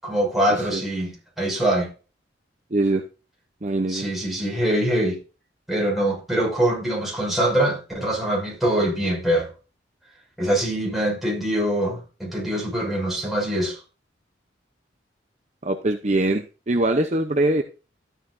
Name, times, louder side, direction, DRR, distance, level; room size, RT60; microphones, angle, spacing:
voice 1, 0.0-1.9 3.9-5.2 5.7-9.5 10.4-13.8, right 1 dB, ahead, 6.3 m, -23 dB
voice 2, 2.7-3.0 3.6-4.1 15.6-17.6, right 2 dB, 40° right, 0.8 m, -22 dB
13.0 x 9.0 x 2.7 m
head